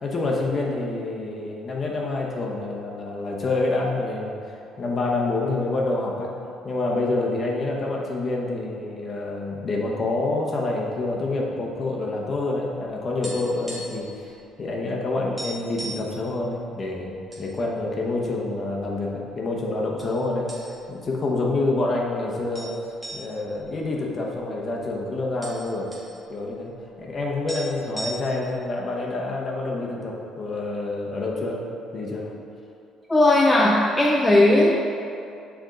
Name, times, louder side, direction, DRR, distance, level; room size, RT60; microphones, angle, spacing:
voice 1, 0.0-6.3 6.6-14.3 14.6-22.7 23.1-25.9 26.3-26.7 27.0-31.6 31.9-32.3, left 2 dB, 35° left, -2 dB, 0.9 m, -27 dB
sound 1, 12.9-14.1 14.4-14.6 14.9-15.0 15.4-16.1 16.8-17.5 17.8-18.0 18.7-19.3 20.0-20.2 20.5-21.0 21.4-21.5 22.5-24.6 24.9-25.0 25.2-26.1 27.2-27.3 27.5-28.5, right 1 dB, 10° right, 1.3 m, -37 dB
voice 2, 33.1-34.9, left 1 dB, 10° left, -3 dB, 0.4 m, -17 dB
7.4 x 3.5 x 3.8 m, 2.6 s
cardioid pair, 140°, 0 cm